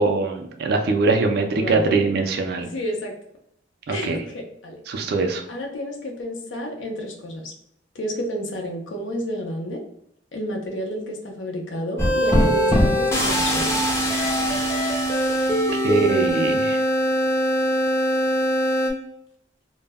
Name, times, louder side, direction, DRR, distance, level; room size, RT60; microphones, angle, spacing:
voice 1, 0.0-2.7 3.9-4.2 4.9-5.4 15.7-16.8, right 3 dB, 60° right, 4 dB, 0.3 m, -22 dB
voice 2, 1.5-1.9 2.6-3.1 3.9-4.8 5.5-7.5 7.9-9.8 10.3-13.8, equal, 80° left, 1 dB, 0.5 m, -31 dB
sound 1, 12.0-18.9, equal, 15° left, 0.5 m, -21 dB
2.1 x 2.0 x 3.3 m, 0.75 s
head